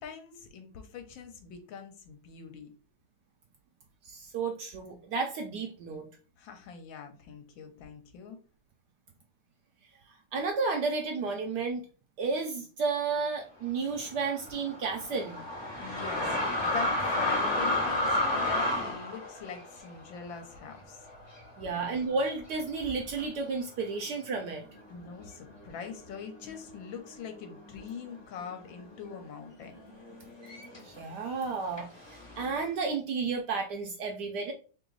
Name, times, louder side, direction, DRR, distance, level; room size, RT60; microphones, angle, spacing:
voice 1, 0.0-2.7 6.4-8.4 15.8-21.0 21.7-21.9 24.9-29.8, left 6 dB, 75° left, 6 dB, 1.5 m, -43 dB
voice 2, 4.1-6.1 10.3-11.8 12.2-15.4 21.6-24.6 30.8-34.5, right 4 dB, 70° right, 3 dB, 1.0 m, -32 dB
sound 1, 13.9-21.5 21.9-22.0 22.8-23.2 24.0-24.1 24.4-26.1 26.4-27.0 27.2-31.0 31.8-32.6, left 1 dB, 30° left, 0.4 m, -32 dB
3.4 x 2.9 x 3.8 m, 0.37 s
omnidirectional pair, 2.2 m